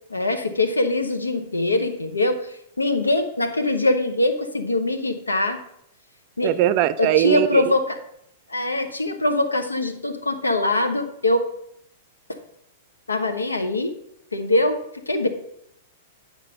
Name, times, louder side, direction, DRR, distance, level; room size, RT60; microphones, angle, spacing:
voice 1, 0.1-2.4 2.8-5.6 6.4-6.6 7.0-8.0 8.5-11.5 12.3-12.4 13.1-13.9 14.3-14.8 15.1-15.3, left 2 dB, 85° left, 7 dB, 1.0 m, -22 dB
voice 2, 6.4-7.6, right 13 dB, 45° right, 16 dB, 0.5 m, -20 dB
9.6 x 5.0 x 5.3 m, 0.75 s
figure-of-eight pair, 100°, 0 cm